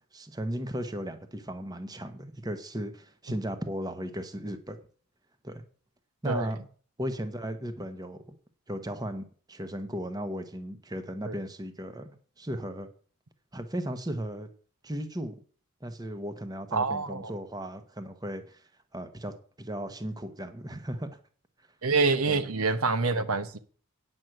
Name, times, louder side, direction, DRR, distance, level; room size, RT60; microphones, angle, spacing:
voice 1, 0.1-4.8 5.4-5.6 6.2-6.6 7.0-8.2 8.7-12.9 13.5-14.5 14.8-15.4 15.8-18.6 18.9-21.2 22.3-22.4, equal, 15° right, 9 dB, 0.9 m, -36 dB
voice 2, 16.7-17.3 21.8-23.6, right 4 dB, 75° right, 12 dB, 1.0 m, -26 dB
9.3 x 6.2 x 7.7 m, 0.43 s
head